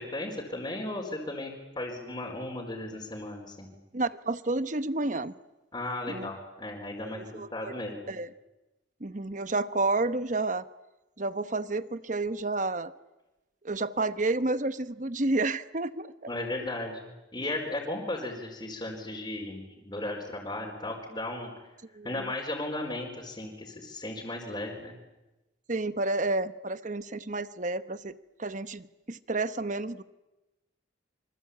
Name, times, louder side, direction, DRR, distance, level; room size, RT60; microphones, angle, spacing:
voice 1, 0.0-3.7 5.7-8.1 16.3-21.5 22.0-24.9, left 2 dB, 25° left, -1 dB, 4.5 m, -36 dB
voice 2, 3.9-5.3 6.1-6.3 7.0-7.7 8.1-8.3 9.0-10.6 11.2-12.9 13.6-16.1 21.9-22.2 25.7-28.1 28.4-30.0, right 2 dB, 40° right, 13 dB, 1.0 m, -30 dB
27.5 x 25.0 x 8.6 m, 1.0 s
head